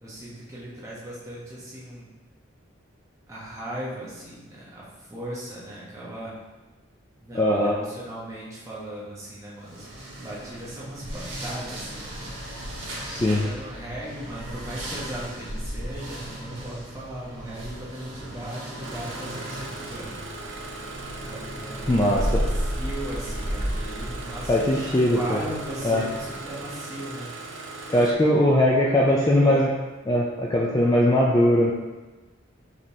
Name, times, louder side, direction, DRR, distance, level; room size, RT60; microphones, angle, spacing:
voice 1, 0.0-2.1 3.3-6.3 7.2-9.9 10.2-12.4 13.2-20.1 21.0-27.3 28.2-28.6 29.1-29.7, right 1 dB, 15° right, -7 dB, 1.1 m, -37 dB
voice 2, 7.3-7.8 13.0-13.4 21.9-22.2 24.5-25.4 25.8-26.0 27.9-29.7 30.1-31.7, left 1 dB, 20° left, -4 dB, 0.3 m, -20 dB
sound 1, 9.6-26.7, equal, 80° right, 1.1 m, -34 dB
Engine starting, 18.8-28.1, right 2 dB, 65° right, 0.5 m, -39 dB
5.0 x 3.4 x 2.8 m, 1.2 s
head